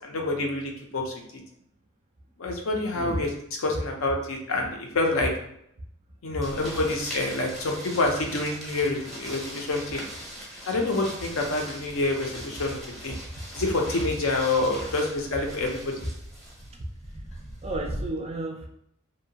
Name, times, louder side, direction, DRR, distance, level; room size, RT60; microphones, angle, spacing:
voice 1, 0.0-1.1 2.4-3.3 3.6-5.3 6.2-10.0 10.7-12.8 13.0-13.2 13.5-16.1, left 2 dB, 65° left, 1 dB, 0.6 m, -27 dB
voice 2, 2.9-3.2 6.3-6.4 17.6-18.7, right 2 dB, 30° right, 2 dB, 0.3 m, -32 dB
sound 1, 6.4-18.1, equal, ahead, 0.7 m, -40 dB
2.7 x 2.1 x 2.7 m, 0.72 s
head